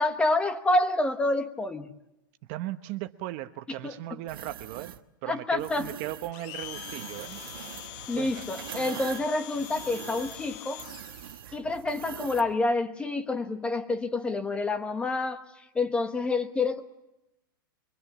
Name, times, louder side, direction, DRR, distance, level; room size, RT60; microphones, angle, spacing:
voice 1, 0.0-1.9 3.8-4.0 5.3-5.9 8.1-10.8 11.5-15.4 15.7-16.8, left 2 dB, 10° left, 9 dB, 1.1 m, -28 dB
voice 2, 2.5-4.9 5.2-7.4 8.2-8.5, right 15 dB, 40° right, 11 dB, 1.0 m, -37 dB
sound 1, 4.3-5.0 5.6-6.3 6.6-12.5, right 11 dB, 80° right, 1.3 m, -43 dB
Domestic sounds home sounds, 6.3-11.4, left 14 dB, 35° left, 0.9 m, -43 dB
24.5 x 21.5 x 7.2 m, 0.91 s
supercardioid pair, 160°, 12 cm